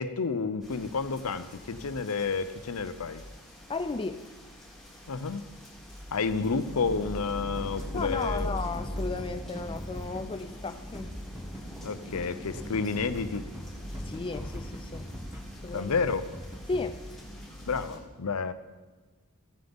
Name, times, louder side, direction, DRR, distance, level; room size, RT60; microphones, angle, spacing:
voice 1, 0.0-3.2 5.1-5.5 6.1-8.5 11.8-13.5 15.7-16.2 17.7-18.5, left 4 dB, 70° left, 12 dB, 0.6 m, -30 dB
sound 1, 0.6-18.0, equal, ahead, 2.8 m, -41 dB
voice 2, 3.7-4.2 7.9-11.2 14.0-15.1 15.6-15.9 16.7-17.0, left 3 dB, 25° left, 7 dB, 0.4 m, -34 dB
sound 2, 7.4-10.2 10.5-10.6 10.9-11.8 12.1-12.2 12.5-15.4 15.7-16.8, equal, 15° right, 1.6 m, -42 dB
16.0 x 7.7 x 3.6 m, 1.3 s
head